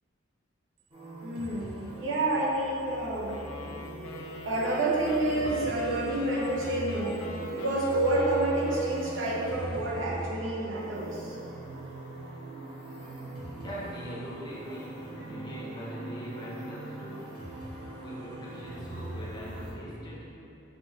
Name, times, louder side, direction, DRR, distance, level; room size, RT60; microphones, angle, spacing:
sound 1, 0.9-19.7, right 1 dB, 25° right, 0.8 m, -41 dB
voice 1, 1.2-3.4 4.4-7.2 7.5-11.4, right 2 dB, 65° right, -4 dB, 0.7 m, -29 dB
sound 2, 3.3-10.5, left 2 dB, 85° left, 0.4 m, -43 dB
voice 2, 13.4-17.4 17.9-20.3, equal, 20° left, -6 dB, 0.7 m, -41 dB
5.1 x 2.7 x 2.9 m, 2.9 s
head